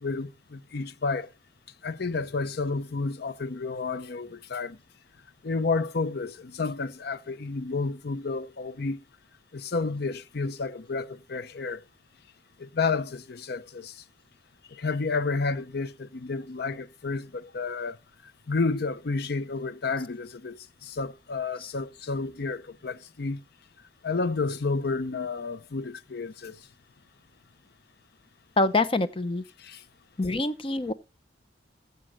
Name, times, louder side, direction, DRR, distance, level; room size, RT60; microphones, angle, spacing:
voice 1, 0.0-1.3 1.8-4.8 5.4-9.0 9.5-11.8 12.6-13.9 14.7-18.0 18.5-23.4 24.0-26.6 29.6-29.8, left 4 dB, 60° left, 0.7 m, -31 dB
voice 2, 28.6-29.4 30.2-30.9, left 2 dB, 30° left, 0.8 m, -25 dB
15.0 x 5.3 x 6.4 m
head